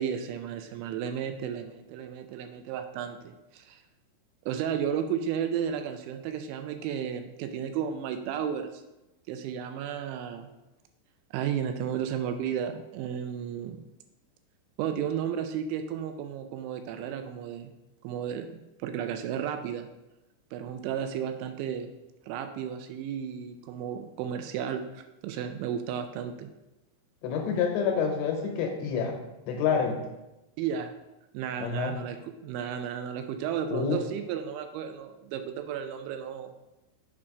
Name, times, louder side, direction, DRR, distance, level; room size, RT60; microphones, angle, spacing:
voice 1, 0.0-3.8 4.5-8.8 9.3-10.5 11.3-13.8 14.8-17.7 18.0-19.9 20.5-21.9 22.3-26.5 30.6-30.9 31.3-36.5, right 8 dB, 85° right, 7 dB, 2.8 m, -33 dB
voice 2, 27.2-29.2 29.5-30.0 31.6-31.9 33.7-34.0, left 6 dB, 75° left, 2 dB, 2.9 m, -27 dB
7.1 x 4.8 x 4.8 m, 0.97 s
omnidirectional pair, 5.6 m